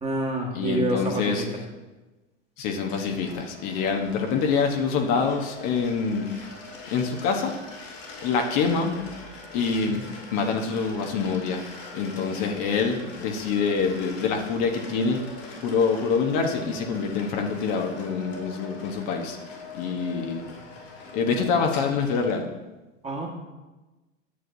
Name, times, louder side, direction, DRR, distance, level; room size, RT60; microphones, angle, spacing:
voice 1, 0.0-1.5 9.8-10.0 23.0-23.3, right 1 dB, 15° right, -1 dB, 1.7 m, -28 dB
voice 2, 0.5-1.4 2.6-6.3 6.9-7.5 8.2-9.0 9.5-10.0 10.3-11.6 11.9-15.2 15.6-19.4 19.7-20.4 21.1-22.4, left 5 dB, 50° left, 3 dB, 1.1 m, -25 dB
sound 1, 2.9-22.4, left 3 dB, 75° left, 3.0 m, -43 dB
9.8 x 7.4 x 2.7 m, 1.1 s
hypercardioid pair, 90°, 37 cm